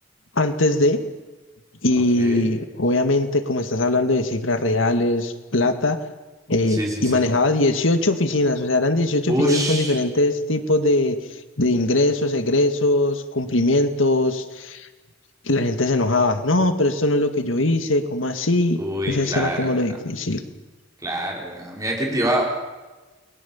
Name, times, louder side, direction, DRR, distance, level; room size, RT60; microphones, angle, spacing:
voice 1, 0.4-1.1 1.8-6.0 6.5-11.2 11.6-14.9 15.5-18.8 19.1-20.4, left 2 dB, 85° left, 8 dB, 2.0 m, -21 dB
voice 2, 2.2-2.5 6.7-7.2 9.3-10.0 18.8-19.7 21.0-22.4, right 1 dB, 15° right, -1 dB, 5.0 m, -25 dB
29.5 x 21.5 x 7.2 m, 1.2 s
head